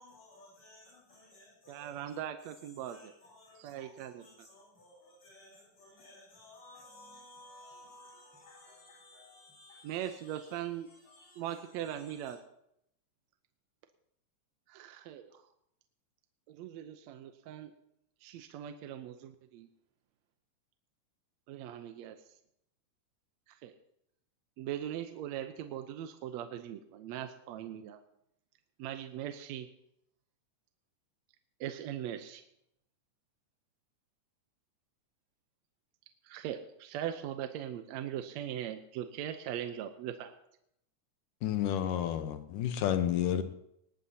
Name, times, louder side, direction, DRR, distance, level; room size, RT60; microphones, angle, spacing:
voice 1, 0.0-2.0 2.4-12.3, left 2 dB, 60° left, -5 dB, 4.9 m, -57 dB
voice 2, 1.7-3.1 3.6-4.2 9.8-10.9 11.4-12.4 14.7-15.4 16.5-17.7 18.2-19.7 21.5-22.2 23.5-23.7 24.6-28.0 28.8-29.7 31.6-32.4 36.2-40.3, right 10 dB, 75° right, 7 dB, 1.8 m, -40 dB
voice 3, 41.4-43.4, left 10 dB, 85° left, 9 dB, 2.5 m, -30 dB
19.0 x 19.0 x 2.8 m, 0.78 s
omnidirectional pair, 3.6 m